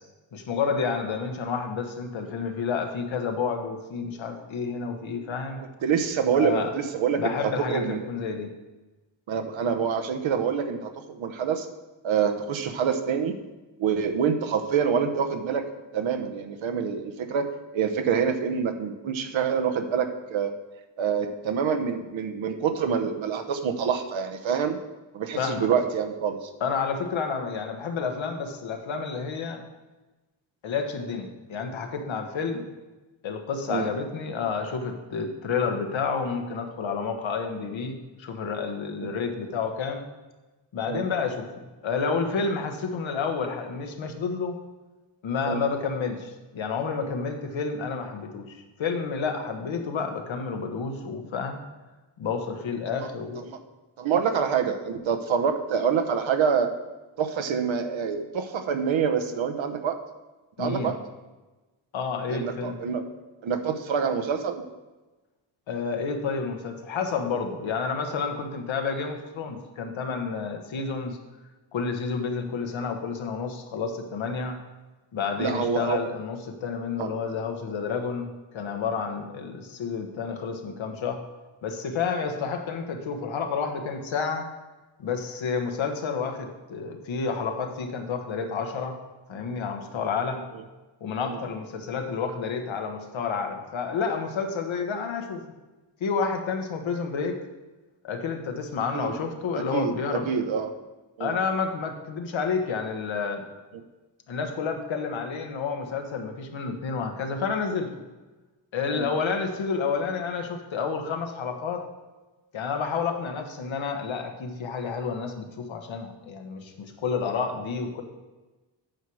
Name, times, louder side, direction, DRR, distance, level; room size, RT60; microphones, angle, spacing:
voice 1, 0.3-5.6 6.3-6.7 7.2-8.5 25.4-25.7 26.6-29.6 30.6-32.7 33.2-40.0 40.7-41.5 41.8-44.6 45.2-51.6 52.2-53.5 60.6-61.0 61.9-62.8 65.7-71.2 71.7-74.6 75.1-78.3 78.5-81.2 81.6-84.5 85.0-89.0 89.3-90.4 91.0-95.4 96.0-97.4 98.0-100.3 101.2-103.4 104.3-107.9 108.7-111.9 112.5-118.0, left 5 dB, 80° left, 4 dB, 1.3 m, -30 dB
voice 2, 5.6-8.1 9.3-11.7 12.0-13.4 13.8-15.7 15.9-20.5 21.0-24.8 25.1-26.5 33.7-33.9 40.9-41.0 45.4-45.6 53.5-53.6 54.0-56.7 57.2-60.0 60.6-61.0 62.3-63.1 63.4-64.6 75.4-76.0 77.0-77.1 91.2-91.4 98.9-99.1 99.5-100.7 101.2-101.4 108.9-109.1, right 7 dB, 80° right, 7 dB, 0.9 m, -26 dB
9.1 x 6.3 x 4.7 m, 1.2 s
wide cardioid pair, 160°, 46 cm